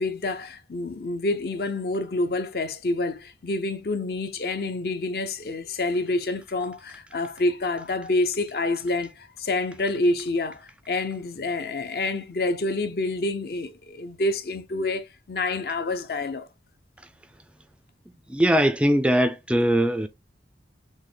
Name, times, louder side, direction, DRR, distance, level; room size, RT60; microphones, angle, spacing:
voice 1, 0.0-16.5, left 2 dB, 55° left, 0.6 m, -27 dB
voice 2, 18.3-20.1, right 1 dB, 5° right, 0.3 m, -21 dB
6.3 x 2.1 x 3.4 m
head